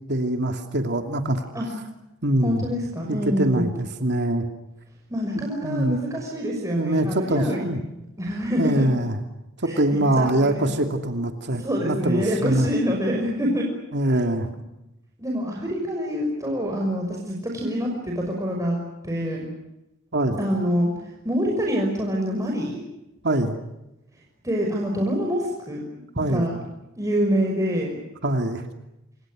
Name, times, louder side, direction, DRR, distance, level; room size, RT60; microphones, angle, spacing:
voice 1, 0.1-1.5 2.2-2.6 3.1-4.4 5.6-6.0 6.8-7.8 8.6-9.2 9.6-12.7 13.9-14.5 20.1-20.4 23.2-23.6 26.2-26.5 28.2-28.6, right 1 dB, 60° right, 5 dB, 2.8 m, -23 dB
voice 2, 2.4-3.7 5.1-7.7 8.2-8.9 9.7-10.7 11.5-13.7 15.2-18.8 19.0-19.5 20.4-20.9 21.2-22.8 24.4-25.8 26.3-26.6 27.0-28.0, equal, 15° right, -1 dB, 6.0 m, -26 dB
28.5 x 27.0 x 6.4 m, 0.93 s
head